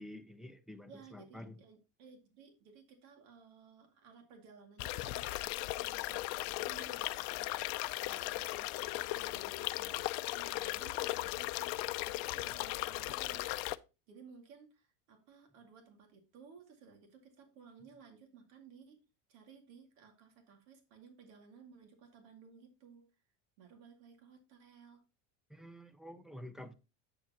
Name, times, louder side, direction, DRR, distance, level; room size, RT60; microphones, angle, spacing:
voice 1, 0.0-1.6 25.5-26.7, left 1 dB, ahead, 0.6 m, -49 dB
voice 2, 0.9-13.7 14.1-19.0 19.3-23.1 23.6-25.0, right 5 dB, 80° right, 2.3 m, -58 dB
sound 1, 4.8-13.8, left 19 dB, 60° left, 0.5 m, -37 dB
8.5 x 7.0 x 2.9 m
cardioid pair, 135°, 39 cm